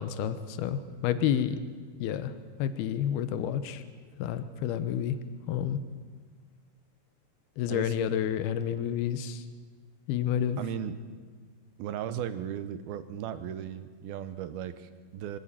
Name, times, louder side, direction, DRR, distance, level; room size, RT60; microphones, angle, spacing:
voice 1, 0.0-1.6 2.0-2.3 2.6-3.8 4.2-5.2 5.5-5.8 7.6-9.4 10.1-10.6, left 9 dB, 80° left, 11 dB, 2.9 m, -29 dB
voice 2, 10.6-10.9 11.8-15.4, right 10 dB, 75° right, 12 dB, 2.9 m, -36 dB
24.0 x 16.5 x 9.0 m, 1.5 s
omnidirectional pair, 4.6 m